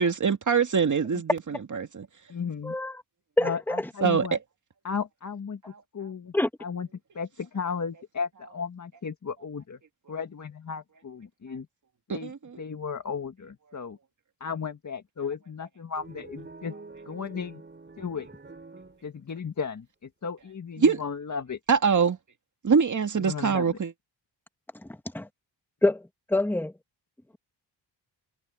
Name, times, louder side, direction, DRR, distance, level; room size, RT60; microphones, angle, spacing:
voice 1, 0.0-2.1 4.0-4.4 12.1-12.6 20.8-21.0 21.7-22.2 22.6-23.9, right 6 dB, 40° right, 2.3 m, -24 dB
voice 2, 2.3-2.7 3.4-4.4 4.8-5.6 5.9-6.3 6.6-6.9 7.1-9.8 10.1-11.7 12.1-12.3 12.6-14.0 14.4-16.8 17.1-17.6 18.0-18.3 19.0-19.9 20.2-21.6 23.2-23.8, left 6 dB, 40° left, 1.9 m, -34 dB
voice 3, 3.4-3.8 6.3-6.5 25.1-25.3 25.8-26.0 26.3-26.7, left 1 dB, 5° left, 1.5 m, -25 dB
sound 1, 16.0-19.4, right 3 dB, 25° right, 4.9 m, -47 dB
wide cardioid pair, 110°, 44 cm